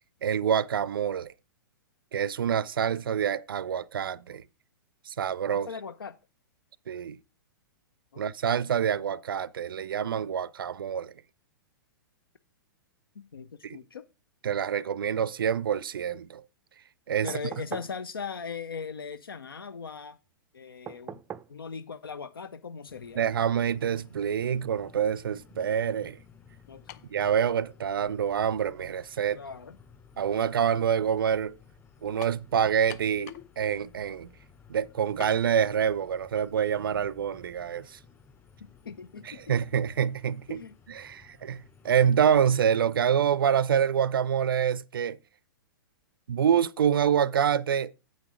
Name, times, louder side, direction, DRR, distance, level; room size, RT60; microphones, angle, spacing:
voice 1, 0.2-1.3 2.1-4.4 5.1-5.7 6.9-7.2 8.2-11.1 13.6-13.8 14.4-16.4 17.1-17.3 23.2-26.2 27.1-29.4 30.2-31.6 32.0-34.3 34.7-38.0 39.3-40.6 40.9-45.2 46.3-47.9, right 8 dB, 80° right, 0.4 m, -26 dB
voice 2, 5.5-6.2 8.1-8.6 13.1-14.0 17.2-20.2 20.5-21.2 21.5-23.2 26.7-27.0 29.3-29.8 38.8-39.4 40.5-40.8, left 5 dB, 85° left, 0.6 m, -39 dB
sound 1, 17.3-18.0 20.9-21.6 23.2-23.3, right 9 dB, 15° right, 0.4 m, -41 dB
sound 2, 22.9-42.7, left 6 dB, 20° left, 2.5 m, -56 dB
sound 3, 26.9-27.2 28.1-28.2 32.2-32.5 32.9-33.5 33.8-33.9 35.2-35.4, left 11 dB, 50° left, 0.7 m, -44 dB
8.6 x 6.2 x 4.8 m
hypercardioid pair, 115°, 12 cm